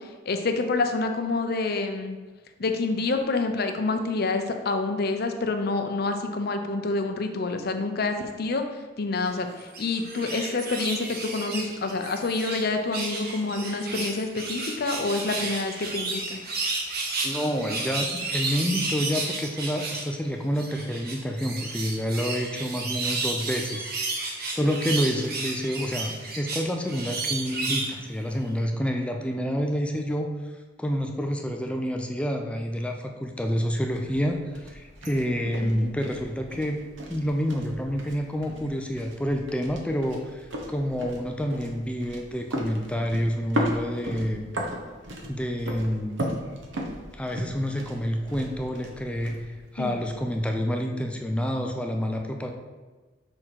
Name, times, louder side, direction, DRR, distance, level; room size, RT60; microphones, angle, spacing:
voice 1, 0.3-2.2 2.6-8.6 9.0-16.4 35.6-35.9 49.8-50.0, left 3 dB, 55° left, 6 dB, 0.6 m, -27 dB
sound 1, 9.6-12.7 12.9-20.1 20.5-28.0 28.4-28.5, right 3 dB, 55° right, 1.0 m, -32 dB
voice 2, 17.2-30.3 30.8-36.8 37.1-44.5 45.3-46.2 47.2-52.5, equal, 5° left, 3 dB, 0.4 m, -28 dB
sound 2, 33.4-50.4, equal, 85° right, 0.9 m, -37 dB
6.2 x 3.8 x 4.5 m, 1.3 s
head